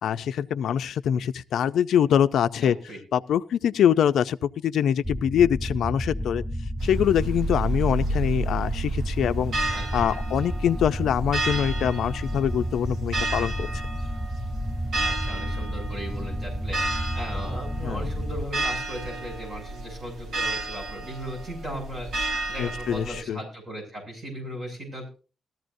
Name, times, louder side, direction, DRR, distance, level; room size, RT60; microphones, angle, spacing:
voice 1, 0.0-2.8 3.1-6.4 6.8-9.5 9.9-13.8 17.8-18.1 22.6-23.4, left 9 dB, 75° left, 10 dB, 0.5 m, -24 dB
voice 2, 2.6-3.0 9.7-9.8 10.1-10.2 15.0-22.1 22.5-25.1, equal, 25° right, 0 dB, 7.2 m, -37 dB
sound 1, 5.0-18.5, equal, 5° left, 0.6 m, -31 dB
sound 2, 6.8-23.2, right 2 dB, 65° right, 3.3 m, -31 dB
20.0 x 14.0 x 2.6 m, 0.35 s
wide cardioid pair, 175°, 0 cm